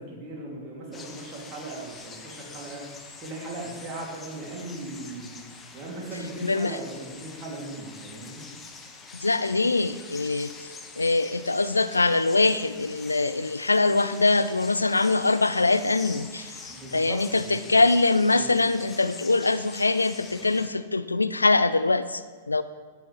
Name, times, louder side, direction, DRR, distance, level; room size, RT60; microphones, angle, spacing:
voice 1, 0.0-5.4 5.7-8.4 16.7-17.8 18.3-18.5, right 2 dB, 30° right, -3 dB, 3.0 m, -38 dB
sound 1, 0.9-20.7, left 4 dB, 15° left, 1.1 m, -45 dB
voice 2, 6.4-6.8 9.2-10.5 11.0-16.6 16.9-22.6, left 3 dB, 80° left, 13 dB, 0.4 m, -23 dB
13.0 x 9.4 x 3.4 m, 1.5 s
figure-of-eight pair, 100°, 0 cm